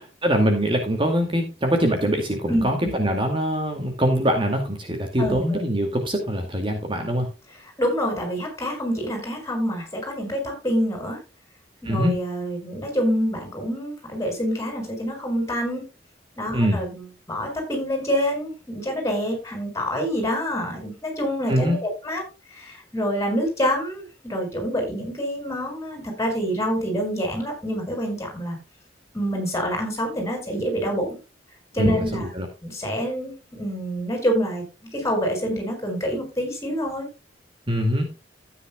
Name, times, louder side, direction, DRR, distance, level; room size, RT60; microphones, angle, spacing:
voice 1, 0.0-7.3 11.8-12.2 16.5-16.8 21.5-21.8 31.8-32.5 37.7-38.1, equal, 30° right, 4 dB, 2.2 m, -23 dB
voice 2, 2.5-2.9 5.2-5.6 7.8-11.2 11.8-15.8 16.4-22.2 22.5-28.6 29.1-31.2 31.7-32.3 32.6-37.1, equal, 15° left, 3 dB, 6.6 m, -26 dB
14.5 x 9.7 x 2.3 m, 0.29 s
head